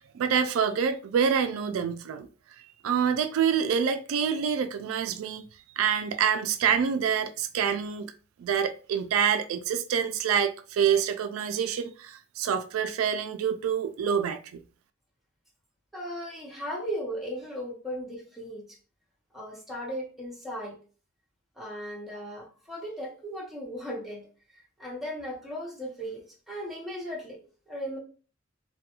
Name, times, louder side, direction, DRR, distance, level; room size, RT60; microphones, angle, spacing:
voice 1, 0.1-2.3 2.8-5.4 5.8-8.1 8.4-14.6, right 7 dB, 90° right, 0.3 m, -26 dB
voice 2, 15.9-18.8 19.3-20.8 21.6-24.3 24.5-27.4 27.7-28.0, equal, ahead, 0.8 m, -37 dB
2.3 x 2.3 x 2.8 m
head